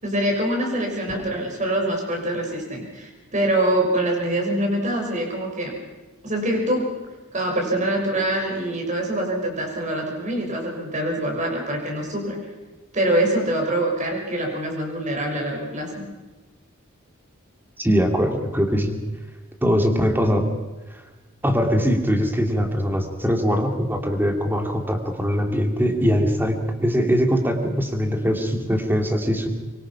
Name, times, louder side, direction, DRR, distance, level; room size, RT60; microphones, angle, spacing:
voice 1, 0.0-5.8 6.2-7.0 7.3-12.4 12.9-16.0, right 1 dB, 35° right, 1 dB, 6.1 m, -24 dB
voice 2, 17.8-19.0 19.6-20.4 20.9-21.0 21.4-29.5, equal, 10° right, 4 dB, 2.7 m, -22 dB
24.5 x 24.0 x 5.9 m, 1.2 s
head